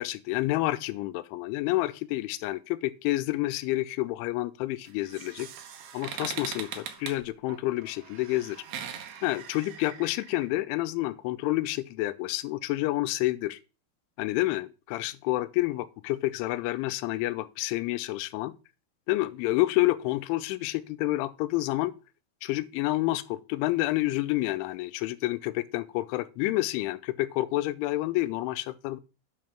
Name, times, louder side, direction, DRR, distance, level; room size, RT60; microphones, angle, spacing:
voice 1, 0.0-5.5 5.9-8.6 9.2-13.6 14.2-18.5 19.1-21.9 22.4-29.0, left 18 dB, 85° left, 3.1 m, -29 dB
sound 1, 4.8-10.4, right 8 dB, 70° right, 2.0 m, -41 dB
9.6 x 4.9 x 5.8 m
omnidirectional pair, 5.4 m